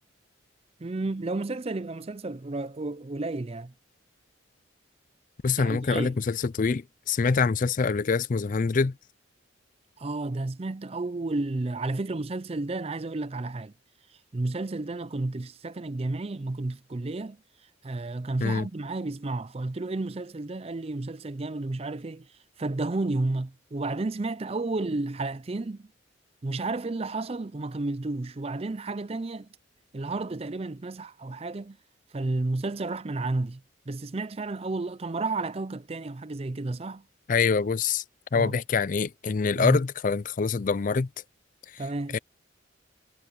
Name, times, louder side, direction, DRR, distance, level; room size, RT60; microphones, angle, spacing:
voice 1, 0.8-3.7 5.6-6.2 10.0-13.7 14.3-17.4 17.8-22.3 22.6-25.9 26.4-29.5 29.9-31.8 32.1-37.0 38.3-38.6 39.6-39.8 41.8-42.2, right 2 dB, 30° right, 0.5 m, -32 dB
voice 2, 5.4-8.9 18.4-18.7 37.3-38.0 38.3-41.1 41.7-41.8 42.1-42.2, left 5 dB, 40° left, 0.4 m, -25 dB
head